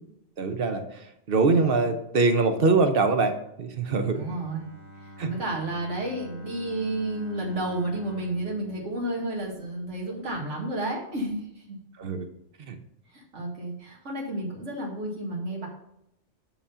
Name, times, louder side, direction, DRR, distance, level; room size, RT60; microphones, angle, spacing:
voice 1, 0.4-4.2 5.2-5.3 12.0-12.3 12.6-12.8, right 3 dB, 55° right, 7 dB, 1.0 m, -23 dB
Bowed string instrument, 4.1-10.1, right 1 dB, 40° right, 2.0 m, -47 dB
voice 2, 4.1-4.7 5.0-11.8 13.1-15.7, right 1 dB, 80° right, -2 dB, 2.1 m, -31 dB
9.5 x 3.6 x 5.5 m, 0.78 s
omnidirectional pair, 1.2 m